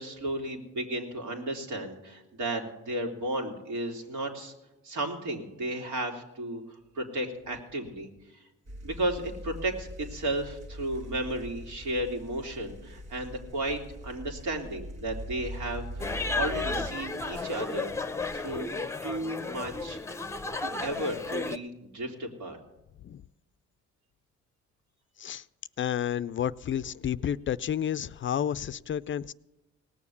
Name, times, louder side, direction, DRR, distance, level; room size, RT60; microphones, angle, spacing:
voice 1, 0.0-4.5 4.8-8.1 8.8-17.9 18.3-18.7 19.0-20.0 20.6-22.6, right 1 dB, 75° right, 3.0 m, -34 dB
sound 1, 8.7-16.9, equal, 55° right, 2.0 m, -42 dB
sound 2, 16.0-21.6, left 3 dB, 10° left, 0.8 m, -33 dB
voice 2, 25.8-29.3, left 9 dB, 40° left, 0.4 m, -31 dB
18.5 x 7.2 x 8.4 m
cardioid pair, 90°, 30 cm